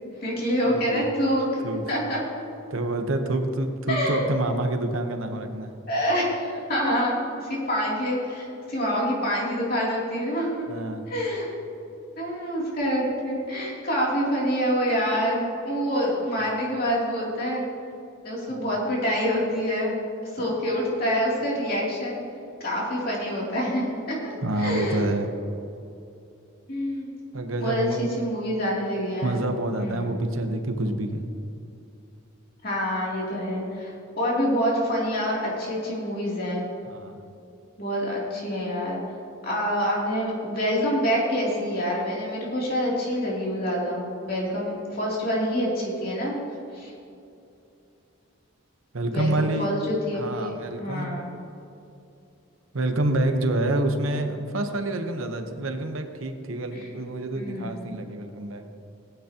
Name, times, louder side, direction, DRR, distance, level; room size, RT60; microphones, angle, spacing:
voice 1, 0.2-2.2 3.9-4.3 5.9-10.7 11.1-11.5 12.2-17.6 18.2-19.9 20.3-22.2 22.6-25.0 26.7-27.1 27.6-29.4 29.8-30.2 32.6-36.6 37.8-39.0 39.4-46.4 46.7-46.9 49.1-50.5 50.8-51.3 56.7-56.9 57.3-57.8, equal, 45° left, -4 dB, 2.8 m, -26 dB
voice 2, 1.6-2.0 2.7-5.7 10.7-11.1 18.5-18.7 24.4-25.3 27.3-28.1 29.2-31.3 36.9-37.2 48.9-49.7 50.1-51.1 52.7-58.7, right 2 dB, 75° right, 6 dB, 0.9 m, -27 dB
18.5 x 9.3 x 2.9 m, 2.7 s
head